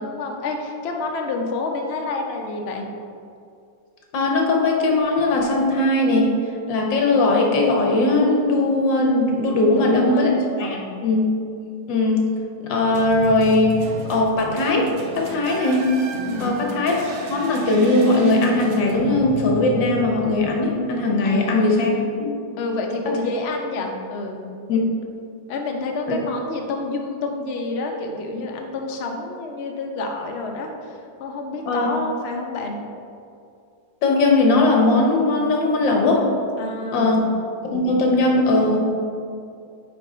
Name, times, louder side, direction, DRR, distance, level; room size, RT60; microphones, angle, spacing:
voice 1, 0.0-2.9 9.6-10.3 10.6-11.1 16.2-16.8 21.2-22.2 22.6-24.5 25.5-32.8 36.6-37.3, left 3 dB, 60° left, 2 dB, 0.6 m, -29 dB
voice 2, 4.1-6.3 6.7-11.2 11.9-12.2 12.6-13.8 14.1-14.9 15.1-15.9 16.4-21.9 22.2-22.3 24.7-24.8 26.1-26.2 31.7-31.9 34.0-36.3 36.9-37.2 37.7-38.8, left 2 dB, 75° left, 0 dB, 1.7 m, -19 dB
sound 1, 12.9-21.2, right 2 dB, 60° right, 0.7 m, -34 dB
9.0 x 3.5 x 4.1 m, 2.4 s
omnidirectional pair, 2.0 m